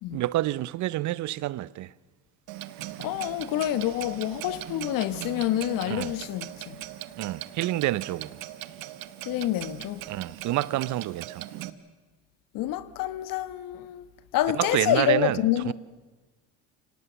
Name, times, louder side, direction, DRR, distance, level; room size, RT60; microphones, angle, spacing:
voice 1, 0.1-1.9 5.9-6.1 7.2-8.4 10.1-11.4 14.5-15.4 15.7-15.8, right 15 dB, 50° right, 0.6 m, -28 dB
Clock, 2.5-11.7, right 14 dB, 70° right, 1.2 m, -40 dB
voice 2, 3.0-6.8 9.3-10.1 12.5-14.1 14.3-15.7, left 13 dB, 60° left, 1.2 m, -27 dB
25.0 x 18.5 x 6.9 m
supercardioid pair, 95°, 37 cm